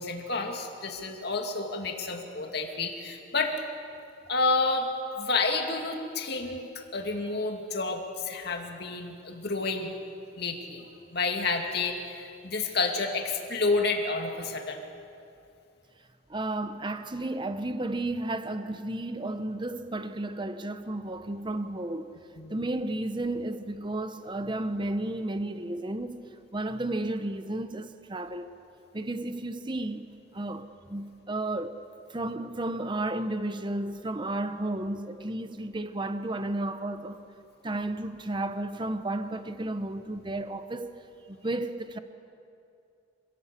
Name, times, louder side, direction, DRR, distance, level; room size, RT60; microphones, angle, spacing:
voice 1, 0.0-3.6 4.3-4.9 5.2-9.9 10.4-10.8 11.1-14.8 22.4-22.6, left 3 dB, 60° left, 2.5 m, -30 dB
voice 2, 16.3-22.1 22.5-28.5 28.9-31.8 32.1-37.2 37.6-41.0 41.3-42.0, right 2 dB, 25° right, 0.8 m, -33 dB
26.0 x 17.0 x 8.4 m
head